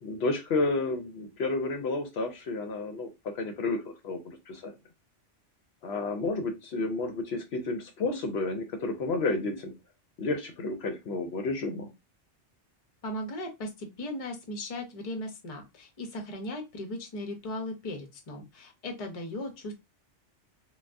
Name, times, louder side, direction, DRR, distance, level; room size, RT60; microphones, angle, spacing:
voice 1, 0.0-3.1 3.3-4.7 5.8-9.7 10.2-11.9, left 3 dB, 65° left, 5 dB, 0.8 m, -31 dB
voice 2, 13.0-19.7, left 1 dB, 35° left, 4 dB, 0.7 m, -37 dB
3.3 x 2.3 x 2.5 m, 0.23 s
omnidirectional pair, 1.2 m